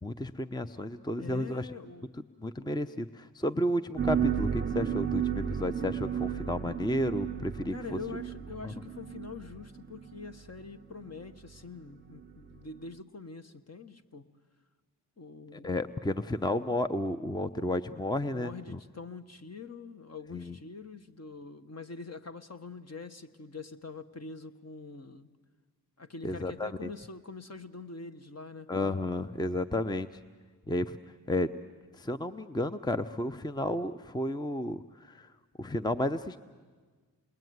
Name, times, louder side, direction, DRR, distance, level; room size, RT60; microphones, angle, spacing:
voice 1, 0.0-1.7 2.4-8.0 8.6-8.7 15.5-18.8 20.3-20.6 26.2-26.9 28.7-30.1 30.7-31.0 31.3-31.5 31.9-35.3 35.6-36.4, left 1 dB, 10° left, 11 dB, 0.8 m, -32 dB
voice 2, 1.2-2.2 7.7-14.3 15.2-15.8 18.3-25.3 26.0-28.7, left 4 dB, 40° left, 8 dB, 1.5 m, -44 dB
sound 1, 4.0-10.3 11.1-11.3 12.1-12.3 12.9-13.0, right 8 dB, 25° right, 0.8 m, -33 dB
28.0 x 21.5 x 9.5 m, 1.5 s
cardioid pair, 60°, 39 cm